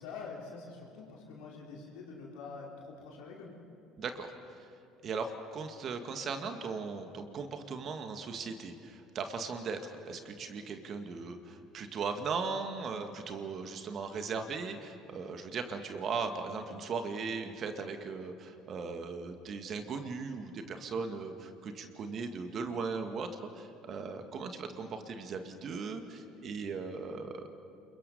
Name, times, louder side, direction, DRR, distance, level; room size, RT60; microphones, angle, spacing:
voice 1, 0.0-3.5, left 4 dB, 70° left, -3 dB, 4.8 m, -45 dB
voice 2, 4.0-4.3 5.0-23.3 23.5-27.5, right 5 dB, 45° right, 6 dB, 2.1 m, -38 dB
29.0 x 22.0 x 5.6 m, 2.6 s
hypercardioid pair, 65°, 0 cm